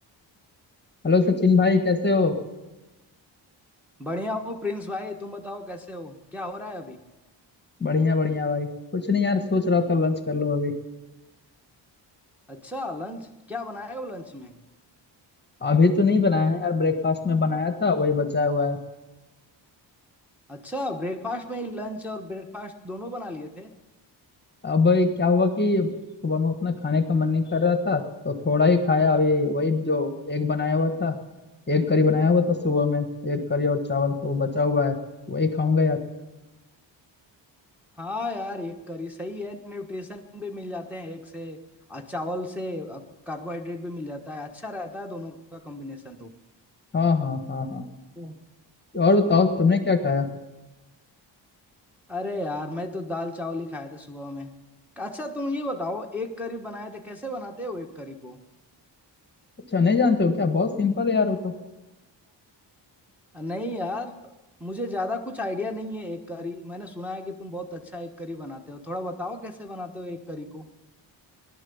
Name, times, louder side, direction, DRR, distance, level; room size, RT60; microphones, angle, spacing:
voice 1, 1.0-2.4 7.8-10.7 15.6-18.8 24.6-25.9 26.2-31.1 31.7-34.9 35.3-36.0 46.9-47.8 48.9-50.3 59.7-61.5, left 4 dB, 25° left, 7 dB, 1.4 m, -22 dB
voice 2, 4.0-7.0 12.5-14.6 20.5-23.7 38.0-41.6 41.9-46.3 48.2-48.3 52.1-54.5 55.0-58.4 63.3-64.1 64.6-70.7, left 1 dB, 5° right, 0 dB, 1.3 m, -34 dB
17.5 x 11.5 x 7.1 m, 1.1 s
wide cardioid pair, 115°, 44 cm